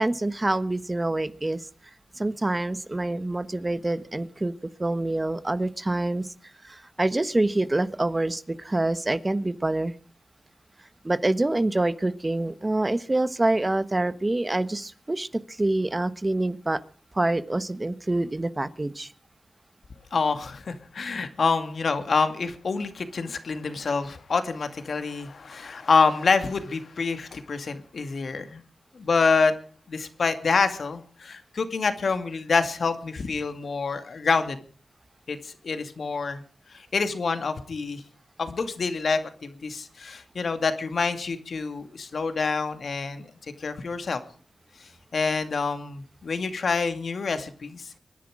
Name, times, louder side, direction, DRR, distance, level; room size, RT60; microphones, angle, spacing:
voice 1, 0.0-1.7 2.1-4.5 4.8-6.3 6.6-9.9 11.0-16.8 17.1-19.1, right 2 dB, 25° right, 13 dB, 1.3 m, -26 dB
voice 2, 20.1-28.6 28.9-29.5 29.9-34.6 35.3-36.4 36.7-38.0 38.4-43.3 43.6-44.2 45.1-48.0, left 4 dB, 65° left, 9 dB, 2.2 m, -27 dB
25.0 x 10.5 x 4.9 m, 0.41 s
cardioid pair, 55°, 0 cm